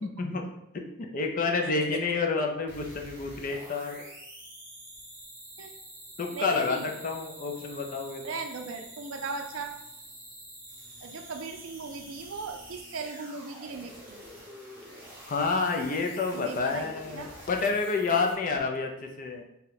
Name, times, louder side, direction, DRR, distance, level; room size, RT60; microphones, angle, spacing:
voice 1, 0.0-4.1 6.2-8.4 15.3-19.4, left 4 dB, 40° left, 3 dB, 0.4 m, -29 dB
sound 1, 2.7-18.6, right 1 dB, 10° right, 0.9 m, -47 dB
voice 2, 6.3-6.9 8.2-9.8 11.0-14.2 16.3-17.3, right 4 dB, 80° right, 4 dB, 0.5 m, -38 dB
2.8 x 2.2 x 3.9 m, 0.83 s
head